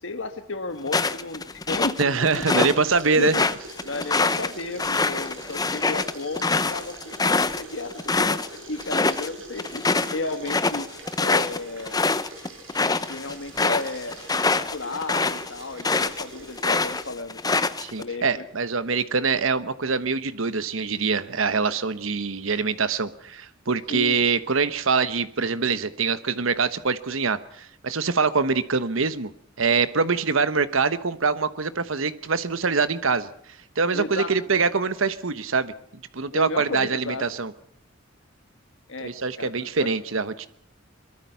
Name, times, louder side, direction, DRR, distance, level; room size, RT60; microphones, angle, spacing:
voice 1, 0.0-2.5 3.2-3.5 3.8-10.9 11.2-12.1 13.1-14.2 14.5-17.4 18.0-18.4 23.9-24.2 33.9-34.4 36.3-37.3 38.9-39.1 39.4-39.9, left 3 dB, 70° left, 8 dB, 1.6 m, -33 dB
sound 1, 0.9-2.8 3.1-8.5 8.8-9.3 9.6-16.2 16.6-18.0, left 3 dB, 20° left, 0.9 m, -24 dB
voice 2, 2.0-3.3 17.8-29.3 29.6-33.3 33.8-35.7 36.1-37.5 39.0-40.5, right 4 dB, 85° right, 13 dB, 1.1 m, -24 dB
sound 2, 2.1-17.1, right 2 dB, 70° right, 6.9 m, -44 dB
23.0 x 23.0 x 5.8 m, 0.63 s
head